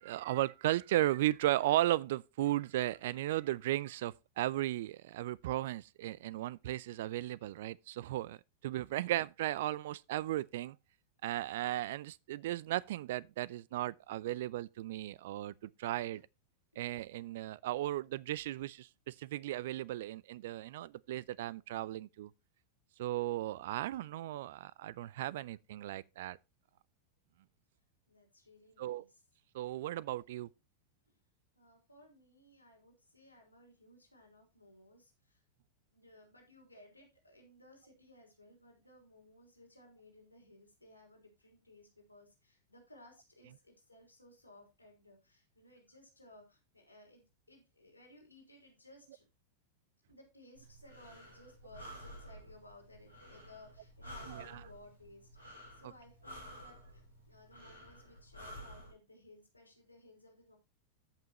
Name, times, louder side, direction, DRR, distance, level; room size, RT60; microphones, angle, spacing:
voice 1, 0.0-8.4 8.6-10.8 11.2-16.2 16.8-22.3 23.0-26.4 28.8-29.0 29.5-30.5 54.3-54.6, right 14 dB, 55° right, 0.3 m, -35 dB
voice 2, 28.1-29.2 31.1-31.2 31.5-35.4 35.9-49.3 50.1-60.6, left 1 dB, 85° left, 3.4 m, -60 dB
Breathing, 50.5-58.9, equal, 90° right, 4.1 m, -52 dB
14.0 x 5.8 x 3.0 m
figure-of-eight pair, 90°, 0 cm